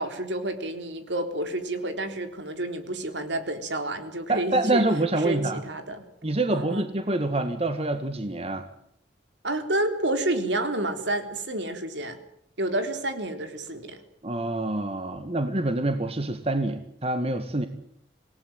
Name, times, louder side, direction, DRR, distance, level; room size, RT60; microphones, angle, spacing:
voice 1, 0.0-4.8 5.2-6.0 6.5-6.9 9.4-12.2 12.6-14.0, right 1 dB, 70° right, 7 dB, 3.8 m, -29 dB
voice 2, 4.3-5.6 6.2-8.7 14.2-17.7, right 2 dB, 35° right, 8 dB, 1.9 m, -26 dB
27.0 x 18.5 x 9.2 m, 0.69 s
head